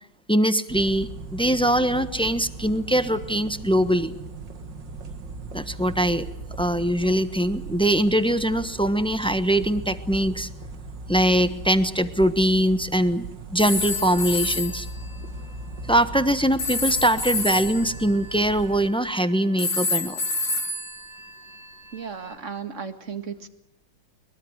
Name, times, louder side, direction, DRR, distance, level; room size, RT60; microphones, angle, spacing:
voice 1, 0.3-4.1 5.5-6.3 6.6-10.5 11.1-13.3 13.5-14.9 15.9-20.2, right 1 dB, 5° left, 11 dB, 0.9 m, -22 dB
sound 1, 0.7-18.9, right 2 dB, 90° right, 2.8 m, -38 dB
sound 2, 13.6-14.9 16.6-19.1 19.6-21.9, left 3 dB, 85° left, 2.6 m, -28 dB
voice 2, 21.9-23.5, right 6 dB, 45° right, 8 dB, 2.2 m, -35 dB
23.0 x 22.5 x 8.1 m, 0.81 s
omnidirectional pair, 1.9 m